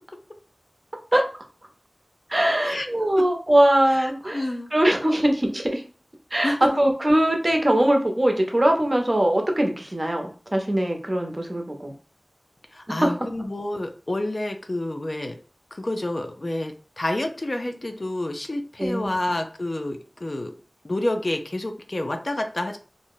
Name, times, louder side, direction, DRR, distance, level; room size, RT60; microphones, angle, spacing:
voice 1, 2.3-4.4 4.7-5.8 6.3-11.9 13.0-13.1 18.8-19.1, right 1 dB, 40° right, 3 dB, 0.7 m, -21 dB
voice 2, 3.9-4.7 6.4-6.8 12.7-15.4 15.7-20.5 20.8-22.8, left 1 dB, 50° left, 5 dB, 0.4 m, -29 dB
2.5 x 2.1 x 3.7 m, 0.38 s
wide cardioid pair, 45°, 0 cm